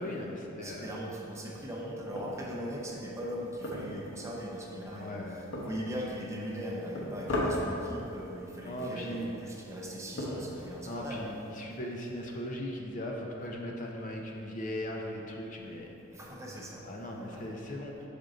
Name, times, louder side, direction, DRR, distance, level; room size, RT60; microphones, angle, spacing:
voice 1, 0.0-0.9 4.9-5.4 8.6-9.3 10.8-15.9 16.8-18.0, left 1 dB, 40° left, 0 dB, 0.5 m, -38 dB
voice 2, 0.6-11.2 16.1-16.9 17.3-17.5, equal, 15° right, -3 dB, 0.7 m, -39 dB
sound 1, 2.1-11.5, left 1 dB, 60° left, 1.0 m, -39 dB
6.2 x 5.1 x 3.8 m, 3.0 s
head